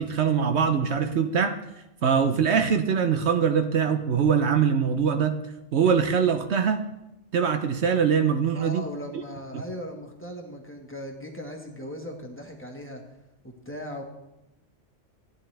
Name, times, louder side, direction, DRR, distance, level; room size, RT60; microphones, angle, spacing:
voice 1, 0.0-1.6 2.0-5.4 5.7-6.8 7.3-8.8 9.5-9.6, right 7 dB, 65° right, 7 dB, 1.0 m, -23 dB
voice 2, 8.5-13.1 13.4-14.0, equal, 10° left, 1 dB, 1.3 m, -38 dB
15.5 x 10.0 x 3.3 m, 0.92 s
omnidirectional pair, 1.3 m